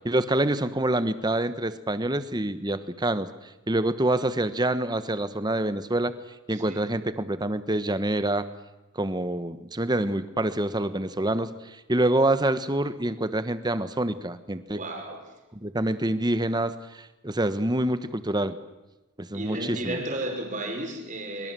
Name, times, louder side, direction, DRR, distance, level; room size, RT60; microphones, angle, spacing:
voice 1, 0.0-3.3 3.7-6.1 6.5-8.5 8.9-11.5 11.9-14.8 15.6-18.6 19.2-20.0, right 1 dB, 20° right, 12 dB, 1.2 m, -26 dB
voice 2, 6.5-6.8 14.7-15.3 19.3-21.5, right 1 dB, 35° right, 2 dB, 5.1 m, -33 dB
24.5 x 23.5 x 7.7 m, 1.1 s
head